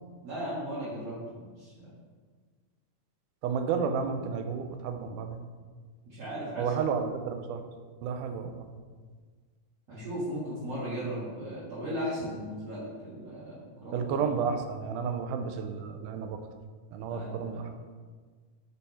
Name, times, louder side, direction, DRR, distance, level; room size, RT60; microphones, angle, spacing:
voice 1, 0.2-1.9 6.0-6.8 9.9-14.2 17.1-17.6, equal, 50° right, -10 dB, 2.4 m, -37 dB
voice 2, 3.4-5.4 6.6-7.6 8.0-8.7 13.9-16.4 16.9-17.7, right 6 dB, 80° right, 7 dB, 1.9 m, -31 dB
8.3 x 3.5 x 4.2 m, 1.5 s
omnidirectional pair, 3.9 m